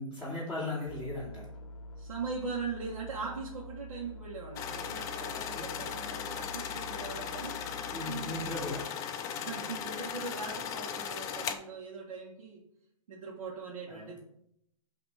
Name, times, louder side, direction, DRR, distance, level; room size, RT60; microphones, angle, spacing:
voice 1, 0.0-1.5 5.5-5.9 7.9-9.0 13.9-14.1, left 2 dB, 5° right, -9 dB, 2.6 m, -37 dB
sound 1, 0.9-8.9, left 1 dB, 65° left, 0.7 m, -47 dB
voice 2, 2.0-7.6 8.1-8.5 9.3-12.6 13.1-14.2, right 4 dB, 75° right, -4 dB, 1.2 m, -40 dB
sound 2, 4.6-11.6, left 8 dB, 20° left, 0.4 m, -37 dB
7.4 x 2.9 x 4.8 m, 0.76 s
hypercardioid pair, 135°, 18 cm